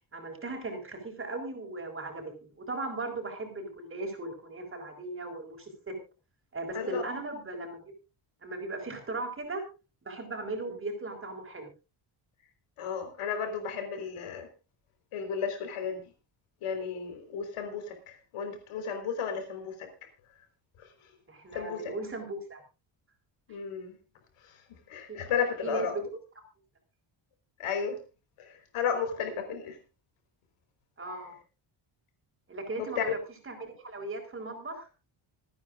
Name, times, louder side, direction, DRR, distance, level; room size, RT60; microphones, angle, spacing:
voice 1, 0.1-6.0 6.5-7.9 8.4-9.6 10.0-11.7 21.3-22.6 23.5-23.6 25.1-25.2 25.6-26.0 31.0-31.3 32.5-33.2 33.4-34.9, right 2 dB, 25° right, 4 dB, 4.5 m, -37 dB
voice 2, 12.8-14.5 15.1-16.0 16.6-19.9 20.8-20.9 21.5-21.9 23.5-24.0 24.4-24.6 24.9-25.9 27.6-28.0 28.4-29.8 32.8-33.0, left 6 dB, 90° left, 6 dB, 4.5 m, -33 dB
27.0 x 9.7 x 2.5 m, 0.30 s
cardioid pair, 145°, 49 cm